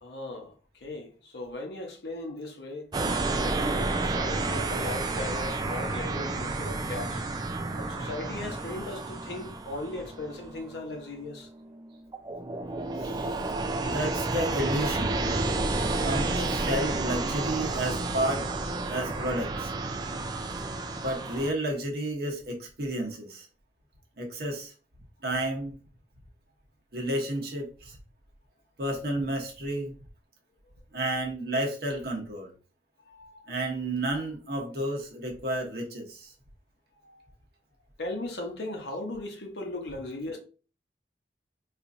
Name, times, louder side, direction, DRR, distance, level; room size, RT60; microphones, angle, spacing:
voice 1, 0.0-2.9 3.3-7.2 7.8-11.5 13.8-13.9 33.0-33.5 37.0-37.2 38.0-40.4, left 2 dB, 70° left, 0.9 m, -38 dB
sound 1, 2.9-21.5, right 2 dB, 25° right, 0.4 m, -31 dB
voice 2, 13.0-13.3 13.8-15.2 16.0-18.4 18.9-19.7 20.9-23.5 24.2-24.7 25.2-25.8 26.9-28.0 28.8-29.9 30.9-32.5 33.5-36.3, right 1 dB, 60° right, 1.0 m, -31 dB
4.4 x 2.5 x 2.6 m
head